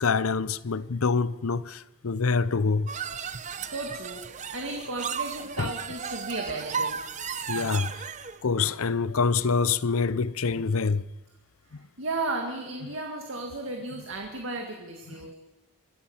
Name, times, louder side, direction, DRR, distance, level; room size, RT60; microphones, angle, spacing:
voice 1, 0.0-2.9 5.6-5.7 7.5-8.1 8.4-11.1 11.7-11.9 12.8-12.9 15.1-15.2, left 4 dB, 75° left, 0.7 m, -26 dB
sound 1, 2.9-8.4, right 6 dB, 35° right, 0.7 m, -35 dB
voice 2, 3.6-7.0 12.0-15.3, right 2 dB, 65° right, 2.1 m, -34 dB
25.0 x 14.5 x 7.2 m
head